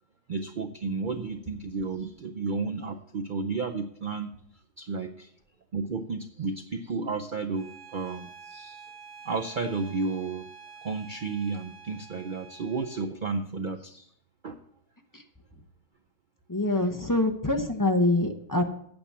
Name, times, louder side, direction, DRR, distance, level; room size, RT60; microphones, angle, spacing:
voice 1, 0.3-4.3 4.8-5.3 5.7-8.8 9.2-10.5 10.8-14.1 14.4-14.6, right 4 dB, 65° right, 5 dB, 0.5 m, -32 dB
Bowed string instrument, 7.5-13.1, right 6 dB, 80° right, 2.0 m, -48 dB
voice 2, 16.5-18.6, left 2 dB, 15° left, 4 dB, 0.8 m, -25 dB
8.9 x 7.0 x 7.2 m, 0.69 s
omnidirectional pair, 1.6 m